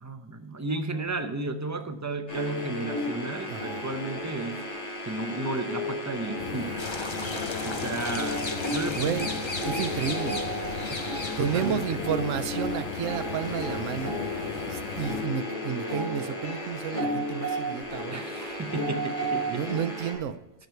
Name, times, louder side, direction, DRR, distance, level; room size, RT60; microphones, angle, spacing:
voice 1, 0.0-4.6 5.0-6.8 7.6-9.2 10.9-12.0 18.1-19.6, right 3 dB, 25° right, 7 dB, 0.4 m, -33 dB
sound 1, 2.3-20.1, equal, 60° left, 2.8 m, -33 dB
voice 2, 3.4-3.8 9.0-9.3 9.6-10.5 11.4-14.2 14.7-18.2 19.5-20.4, right 8 dB, 75° right, 12 dB, 1.0 m, -31 dB
sound 2, 6.4-15.2, left 9 dB, 85° left, 1.0 m, -38 dB
sound 3, 6.8-11.9, left 3 dB, 30° left, 0.6 m, -36 dB
10.5 x 6.5 x 4.5 m, 0.98 s
omnidirectional pair, 1.3 m